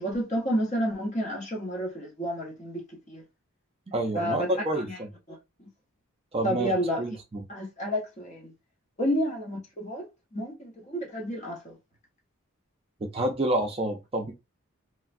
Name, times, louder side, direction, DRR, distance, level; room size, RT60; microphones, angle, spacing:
voice 1, 0.0-3.2 4.1-5.0 5.3-5.7 6.4-7.0 7.5-8.5 9.0-11.8, equal, 35° left, 0.9 m, -30 dB
voice 2, 3.9-5.1 6.3-6.7 7.0-7.4 13.1-14.3, right 1 dB, 25° right, 0.4 m, -28 dB
3.1 x 2.2 x 2.5 m
head